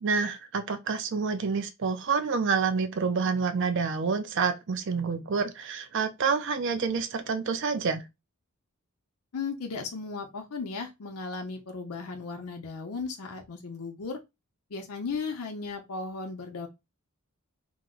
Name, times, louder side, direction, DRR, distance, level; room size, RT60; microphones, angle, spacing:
voice 1, 0.0-8.0, right 5 dB, 55° right, 0.4 m, -28 dB
voice 2, 9.3-14.2 14.7-16.7, left 4 dB, 85° left, 0.6 m, -36 dB
2.9 x 2.0 x 3.6 m
head